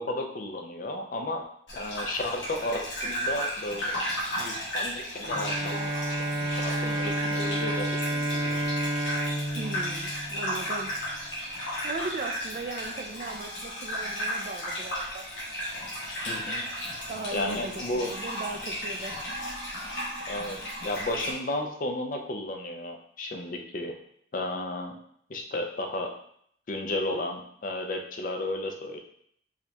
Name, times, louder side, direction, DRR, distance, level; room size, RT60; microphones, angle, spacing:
voice 1, 0.0-1.4 1.7-4.0 4.4-5.9 6.4-8.5 16.3-16.7 17.3-18.1 20.3-23.9 24.3-25.0 25.3-26.1 26.7-29.0, left 1 dB, 45° left, 3 dB, 0.4 m, -33 dB
Gurgling / Bathtub (filling or washing), 1.7-21.3, equal, 90° left, 1.1 m, -34 dB
Bowed string instrument, 5.2-10.9, right 1 dB, 85° right, 1.1 m, -30 dB
voice 2, 9.5-10.9 11.8-15.2 17.1-19.2, right 3 dB, 45° right, 6 dB, 0.3 m, -38 dB
4.7 x 2.8 x 2.2 m, 0.67 s
head